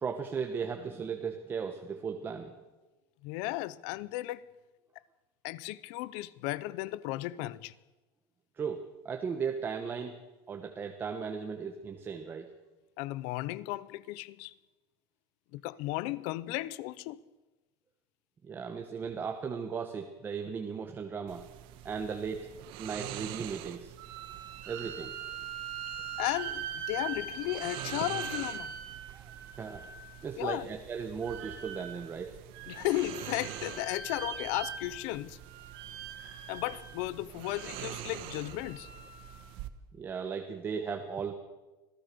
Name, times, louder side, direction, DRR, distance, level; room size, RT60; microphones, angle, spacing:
voice 1, 0.0-2.6 8.6-10.2 10.5-12.5 18.4-21.4 21.8-22.5 22.8-23.9 24.7-25.1 29.1-29.8 30.2-32.4 39.9-41.3, right 6 dB, 15° right, 1.2 m, -36 dB
voice 2, 3.2-4.5 5.4-7.7 13.0-14.5 15.5-17.2 26.2-28.7 30.4-30.7 32.7-35.4 36.5-38.9, left 17 dB, 55° left, 0.8 m, -35 dB
sound 1, 21.3-39.7, right 13 dB, 50° right, 1.3 m, -46 dB
sound 2, 24.0-30.2 31.2-32.1 32.5-35.2 35.4-36.9 37.4-39.5, right 7 dB, 85° right, 4.9 m, -42 dB
26.5 x 16.5 x 6.9 m
cardioid pair, 180°, 12 cm